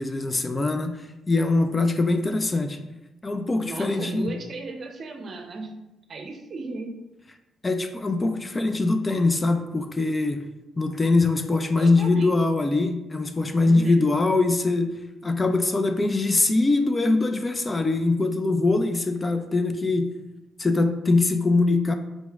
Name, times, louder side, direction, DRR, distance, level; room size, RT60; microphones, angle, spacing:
voice 1, 0.0-2.8 3.2-4.4 7.6-10.5 10.8-20.2 20.6-21.9, left 3 dB, 25° left, 8 dB, 0.3 m, -23 dB
voice 2, 3.6-5.7 6.1-6.9 11.8-12.3 13.6-14.0, right 3 dB, 50° right, 3 dB, 0.6 m, -35 dB
5.1 x 3.0 x 2.4 m, 0.96 s
cardioid pair, 90°, 0 cm